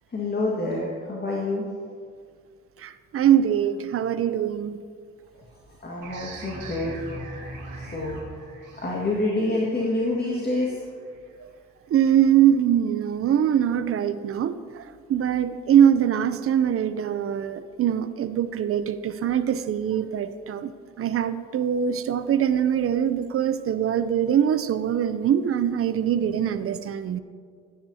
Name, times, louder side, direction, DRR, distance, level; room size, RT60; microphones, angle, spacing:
voice 1, 0.1-1.7 5.8-7.1 7.7-8.3 8.8-10.8, left 2 dB, 35° left, -4 dB, 1.8 m, -27 dB
voice 2, 2.8-4.8 11.9-14.8 15.1-27.2, right 9 dB, 50° right, 12 dB, 0.6 m, -23 dB
sound 1, 6.0-11.3, right 2 dB, 85° right, 2.1 m, -41 dB
13.5 x 9.7 x 2.8 m, 2.1 s
cardioid pair, 90°, 30 cm